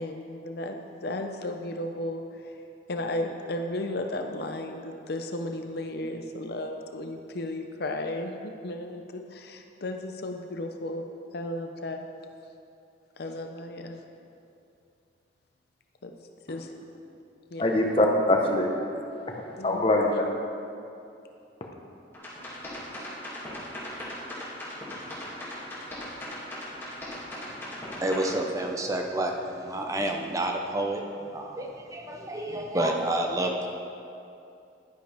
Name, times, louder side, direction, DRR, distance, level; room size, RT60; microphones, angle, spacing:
voice 1, 0.0-2.5 2.9-11.1 11.3-12.1 13.2-14.0 16.0-16.1 16.5-16.7 17.5-17.8 19.6-19.9, left 1 dB, 55° left, 4 dB, 0.6 m, -34 dB
voice 2, 17.6-18.7 19.1-20.1, left 1 dB, 30° left, 1 dB, 1.0 m, -24 dB
sound 1, 22.1-28.3, left 1 dB, 10° left, 2.3 m, -38 dB
voice 3, 27.5-33.7, right 1 dB, 15° right, 2 dB, 0.6 m, -30 dB
11.5 x 10.0 x 3.5 m, 2.6 s
head